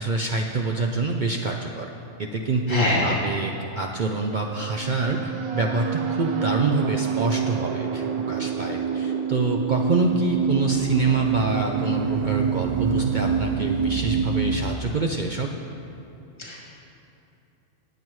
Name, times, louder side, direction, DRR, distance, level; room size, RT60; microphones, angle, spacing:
voice 1, 0.0-1.9 2.2-15.5, right 3 dB, 70° right, 2 dB, 0.4 m, -26 dB
voice 2, 2.7-3.2 16.4-16.7, left 1 dB, 60° left, -6 dB, 2.8 m, -24 dB
sound 1, 4.3-14.6, right 7 dB, 85° right, 1.2 m, -26 dB
19.0 x 7.5 x 3.1 m, 2.8 s
omnidirectional pair, 1.5 m